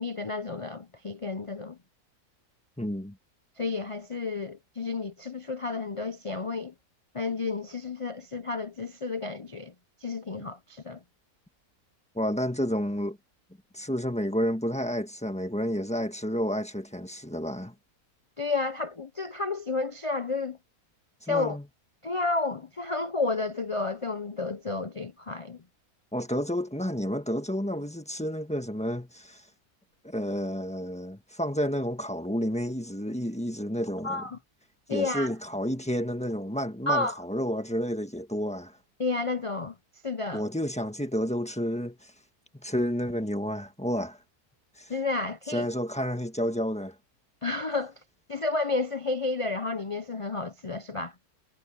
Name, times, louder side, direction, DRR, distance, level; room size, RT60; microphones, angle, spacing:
voice 1, 0.0-1.8 3.6-6.7 7.1-9.7 10.0-11.0 18.4-20.6 21.3-21.6 22.0-25.6 34.0-34.4 34.9-35.3 36.9-37.2 39.0-39.8 40.0-40.4 44.9-45.7 47.4-47.9 48.3-51.1, left 3 dB, 55° left, 0.3 m, -31 dB
voice 2, 2.8-3.2 12.1-13.2 13.7-17.7 21.3-21.6 26.1-29.5 30.0-34.2 34.9-38.8 40.3-42.1 42.6-44.2 44.8-44.9 45.5-46.9, equal, 5° left, 1.3 m, -30 dB
omnidirectional pair, 1.6 m